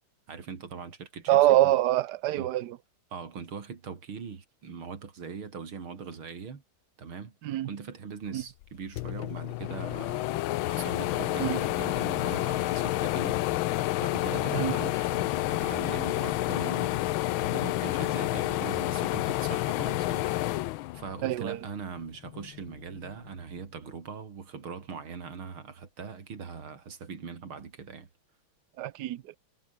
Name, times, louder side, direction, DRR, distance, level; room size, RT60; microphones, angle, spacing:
voice 1, 0.3-1.7 2.4-2.5 3.1-6.6 7.0-7.3 7.7-10.3 10.7-13.4 14.0-20.3 20.9-28.1, right 5 dB, 85° right, 3.6 m, -41 dB
voice 2, 1.3-2.8 7.4-7.7 8.3-8.4 11.4-11.6 14.5-14.8 21.2-21.6 28.8-29.4, right 14 dB, 65° right, 1.2 m, -25 dB
sound 1, 8.6-8.7 9.0-21.6 22.0-23.1, left 16 dB, 80° left, 1.4 m, -29 dB
omnidirectional pair, 2.3 m